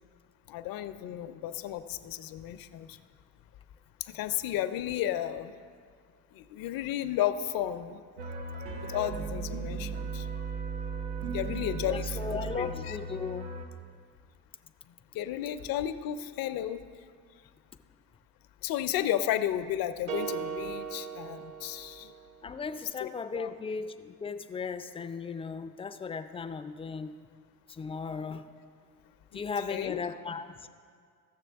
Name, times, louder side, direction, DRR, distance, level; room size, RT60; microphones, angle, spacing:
voice 1, 0.5-3.0 4.0-5.5 6.3-8.0 8.8-10.4 11.3-13.0 15.1-16.8 18.6-22.1 23.0-23.5 29.3-29.4 29.7-30.0, left 11 dB, 65° left, 11 dB, 0.6 m, -33 dB
sound 1, 8.2-13.6, right 4 dB, 90° right, 1.2 m, -36 dB
voice 2, 11.9-13.5 22.4-27.1 27.7-28.5 29.3-30.7, left 5 dB, 15° left, 9 dB, 0.3 m, -36 dB
sound 2, 20.1-22.4, right 7 dB, 50° right, 0.9 m, -38 dB
15.0 x 6.7 x 3.4 m, 2.1 s
cardioid pair, 110°, 37 cm